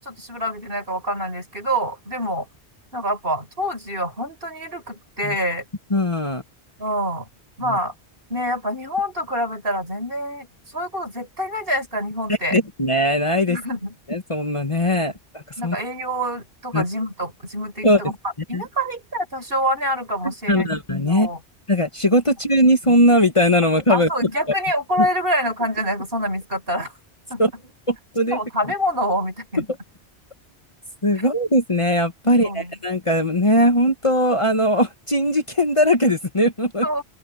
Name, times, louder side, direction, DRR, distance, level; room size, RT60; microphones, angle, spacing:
voice 1, 0.0-2.5 2.9-5.6 6.8-7.3 7.6-7.9 8.3-10.5 10.7-12.6 13.5-14.0 14.9-15.1 15.6-18.2 18.5-20.7 21.1-21.4 23.9-26.9 27.3-27.4 28.3-29.6 32.2-32.8 36.8-37.0, equal, 55° right, 5.5 m, -26 dB
voice 2, 5.9-6.4 7.7-7.8 12.5-13.6 14.1-15.8 16.7-16.8 17.8-18.0 18.5-18.6 20.5-21.3 21.7-24.1 25.0-25.1 27.4-27.5 27.9-28.4 31.0-36.8, equal, 30° left, 1.6 m, -19 dB
open air
omnidirectional pair, 1.1 m